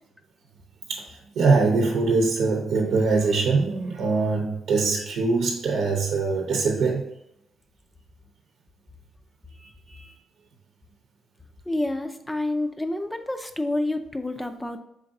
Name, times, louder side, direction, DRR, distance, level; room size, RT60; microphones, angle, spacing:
voice 1, 0.9-7.0 9.5-10.1, right 4 dB, 70° right, 0 dB, 0.8 m, -23 dB
voice 2, 11.7-14.8, left 2 dB, 10° left, 7 dB, 0.5 m, -28 dB
5.2 x 3.8 x 2.7 m, 0.84 s
cardioid pair, 90°, 0 cm